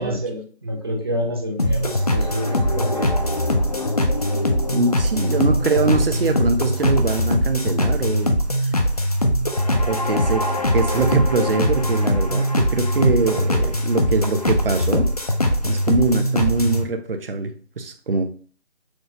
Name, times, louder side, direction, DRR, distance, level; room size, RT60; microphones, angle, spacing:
voice 1, 0.0-3.1, equal, 20° right, 1 dB, 0.6 m, -28 dB
sound 1, 1.6-16.8, left 1 dB, 35° left, 0.4 m, -21 dB
voice 2, 4.7-8.4 9.9-10.5 10.7-15.1 15.6-18.3, right 3 dB, 55° right, 6 dB, 0.7 m, -23 dB
6.1 x 2.2 x 2.7 m, 0.42 s
figure-of-eight pair, 160°, 34 cm